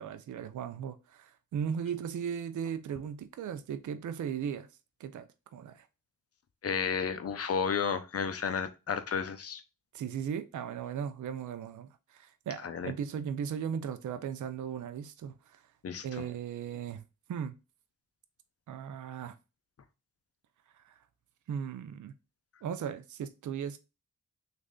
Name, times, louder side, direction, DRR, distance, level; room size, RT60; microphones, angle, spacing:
voice 1, 0.0-4.7 5.0-5.9 9.9-15.6 16.0-17.0 17.3-17.5 18.7-19.4 20.8-21.0 21.5-22.1 22.6-23.8, right 8 dB, 60° right, 0.5 m, -37 dB
voice 2, 6.6-9.6 12.6-12.9 15.8-16.3, left 6 dB, 45° left, 0.5 m, -32 dB
3.1 x 2.5 x 3.6 m
cardioid pair, 65°, 35 cm